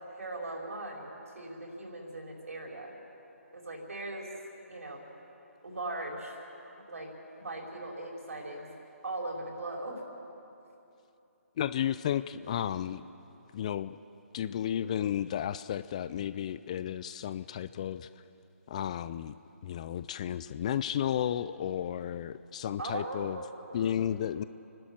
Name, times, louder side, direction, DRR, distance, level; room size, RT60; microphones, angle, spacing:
voice 1, 0.0-2.9 3.5-4.3 4.7-5.0 5.6-6.4 6.6-7.1 7.4-8.7 9.0-10.0 22.8-24.0, right 2 dB, 65° right, 0 dB, 5.0 m, -39 dB
voice 2, 11.6-13.1 13.5-14.0 14.3-18.1 18.7-19.3 19.6-23.4 23.7-24.4, left 10 dB, 25° left, 15 dB, 0.4 m, -33 dB
30.0 x 12.5 x 7.7 m, 2.9 s
figure-of-eight pair, 150°, 8 cm